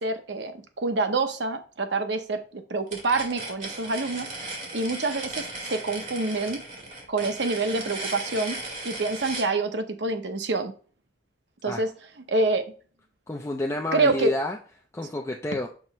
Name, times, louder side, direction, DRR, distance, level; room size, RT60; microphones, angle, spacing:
voice 1, 0.0-4.3 4.7-6.6 7.1-8.6 8.8-10.7 11.6-11.9 12.3-12.6 13.9-14.3, right 3 dB, 70° right, 7 dB, 0.9 m, -27 dB
sound 1, 2.9-9.5, right 2 dB, 45° right, 2.4 m, -36 dB
voice 2, 13.3-14.6 14.9-15.7, left 1 dB, 15° left, 1 dB, 0.5 m, -29 dB
6.1 x 3.0 x 5.4 m, 0.41 s
head